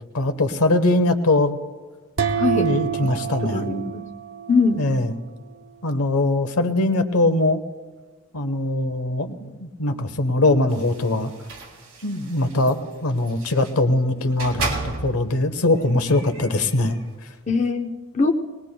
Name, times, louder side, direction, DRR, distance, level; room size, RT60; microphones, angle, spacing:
voice 1, 0.1-1.6 2.5-3.7 4.8-5.1 5.8-7.6 8.3-11.3 12.0-17.0, left 2 dB, 90° left, 8 dB, 1.0 m, -21 dB
sound 1, 2.2-4.9, right 7 dB, 60° right, 0.7 m, -27 dB
voice 2, 2.4-2.7 3.0-3.1 3.4-4.0 4.5-4.8 17.5-18.3, left 4 dB, 30° left, 3 dB, 0.7 m, -22 dB
sound 2, 10.7-13.8 14.3-15.4 15.8-17.2, right 3 dB, 90° right, 2.4 m, -34 dB
20.5 x 20.0 x 2.3 m, 1.4 s
head